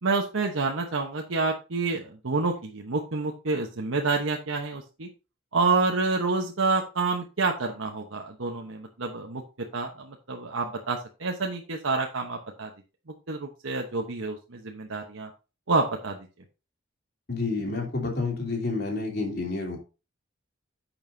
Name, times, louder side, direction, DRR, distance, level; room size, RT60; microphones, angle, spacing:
voice 1, 0.0-5.1 5.5-9.4 9.7-12.7 13.3-15.3 15.7-16.2, right 3 dB, 85° right, 1 dB, 1.1 m, -28 dB
voice 2, 17.3-19.8, left 3 dB, 50° left, 0 dB, 3.0 m, -29 dB
11.0 x 7.2 x 2.7 m, 0.31 s
head